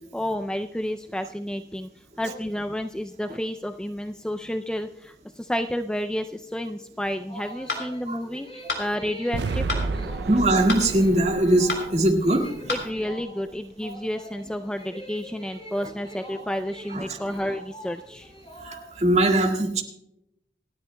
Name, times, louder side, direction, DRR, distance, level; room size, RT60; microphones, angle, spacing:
voice 1, 0.1-10.3 12.7-18.3, equal, 5° left, 7 dB, 0.3 m, -31 dB
sound 1, 7.3-19.2, equal, 35° left, 4.6 m, -44 dB
sound 2, 7.7-7.9 8.7-8.9 9.7-9.9 10.7-10.9 11.7-11.9 12.7-12.9, left 3 dB, 65° left, 3.2 m, -28 dB
sound 3, 9.3-13.5, right 4 dB, 70° right, 0.5 m, -32 dB
voice 2, 10.3-12.5 16.9-17.2 18.6-19.8, right 1 dB, 40° right, 2 dB, 1.8 m, -21 dB
27.0 x 10.0 x 2.2 m, 0.82 s
head